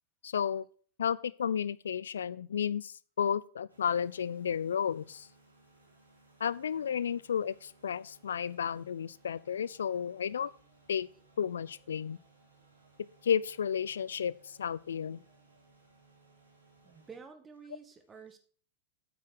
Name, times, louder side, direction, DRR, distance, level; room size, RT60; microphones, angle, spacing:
voice 1, 0.2-0.6 1.0-5.3 6.4-10.5 10.9-11.1 11.4-12.2 13.2-15.2, left 8 dB, 65° left, 19 dB, 0.4 m, -32 dB
sound 1, 3.7-17.2, right 3 dB, 80° right, 4.4 m, -64 dB
voice 2, 16.8-18.4, right 5 dB, 20° right, 8 dB, 1.7 m, -50 dB
9.0 x 8.3 x 4.6 m, 0.44 s
figure-of-eight pair, 90°, 0 cm